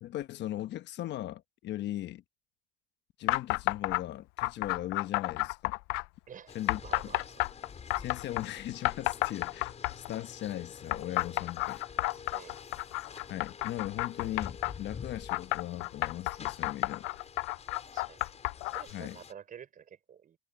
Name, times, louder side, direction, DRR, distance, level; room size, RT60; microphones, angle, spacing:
voice 1, 0.0-2.2 3.2-5.8 6.5-7.1 8.0-11.8 13.3-17.1 18.9-19.2, left 13 dB, 60° left, 1.1 m, -38 dB
sound 1, 3.3-4.0 4.4-6.1 6.7-8.5 8.8-10.2 10.9-14.7 15.3-18.9, left 21 dB, 80° left, 0.7 m, -31 dB
sound 2, 6.5-19.3, left 6 dB, 30° left, 5.7 m, -48 dB
voice 2, 6.8-7.4 12.3-12.6 17.9-18.2 18.6-20.4, right 8 dB, 40° right, 6.2 m, -49 dB
cardioid pair, 110°, 21 cm